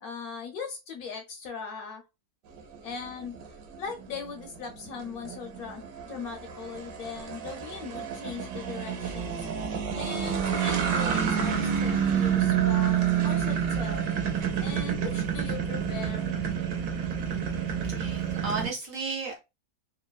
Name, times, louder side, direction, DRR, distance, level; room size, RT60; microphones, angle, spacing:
voice 1, 0.0-2.0 2.8-3.4 3.8-9.5 9.9-14.0 14.6-16.4, left 5 dB, 70° left, 0.9 m, -39 dB
sound 1, 2.6-18.7, right 8 dB, 85° right, 1.3 m, -29 dB
sound 2, 9.0-18.3, right 1 dB, 45° left, 0.4 m, -43 dB
voice 2, 17.8-19.4, right 4 dB, 70° right, 0.8 m, -34 dB
3.0 x 2.1 x 2.2 m
omnidirectional pair, 1.8 m